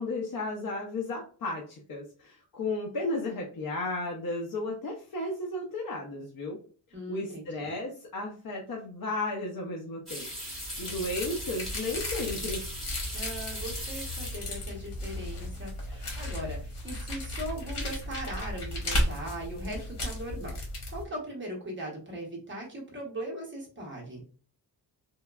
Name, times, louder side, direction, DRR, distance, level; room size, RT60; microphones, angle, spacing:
voice 1, 0.0-6.6 7.1-10.3 10.8-12.6, left 2 dB, 55° left, -1 dB, 0.6 m, -34 dB
voice 2, 6.9-7.7 13.1-20.5 20.9-24.2, right 1 dB, 30° right, -2 dB, 0.8 m, -39 dB
sound 1, 10.1-14.7 15.0-15.6 16.0-16.1 18.8-19.2 19.5-20.0, equal, ahead, 1.2 m, -40 dB
sound 2, 10.3-21.0, left 1 dB, 85° left, 1.1 m, -35 dB
3.0 x 2.2 x 2.2 m, 0.40 s
wide cardioid pair, 160°, 40 cm